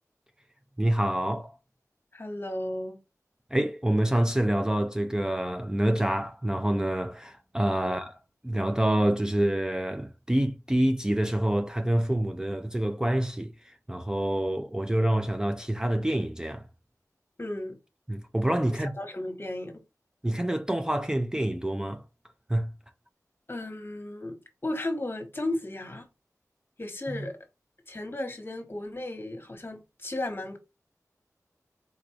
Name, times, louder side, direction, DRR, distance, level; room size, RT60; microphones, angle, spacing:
voice 1, 0.8-1.5 3.5-8.2 8.4-16.7 18.1-18.9 20.2-22.0 22.5-22.7 27.1-27.3, right 1 dB, 10° right, 0.4 m, -27 dB
voice 2, 2.1-3.0 7.7-8.0 17.4-17.8 19.0-19.7 23.5-24.4 24.6-26.1 26.8-27.4 27.9-30.6, left 1 dB, 35° left, 1.2 m, -34 dB
4.1 x 2.5 x 4.5 m
wide cardioid pair, 55°, 6 cm